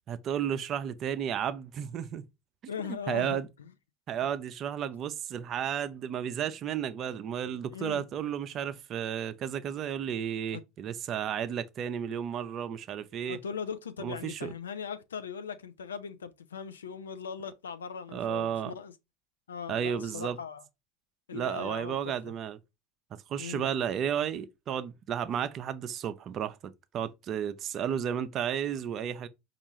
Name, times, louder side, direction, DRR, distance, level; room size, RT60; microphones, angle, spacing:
voice 1, 0.1-2.2 3.1-3.5 4.1-13.4 14.0-14.5 18.1-18.7 19.7-20.4 21.3-22.6 23.1-29.3, right 9 dB, 40° right, 0.4 m, -33 dB
voice 2, 2.7-3.7 7.7-8.0 10.5-10.6 13.3-18.9 19.5-20.6 21.3-22.1 23.4-23.7, left 7 dB, 80° left, 0.4 m, -39 dB
4.4 x 2.4 x 2.9 m
figure-of-eight pair, 75°, 0 cm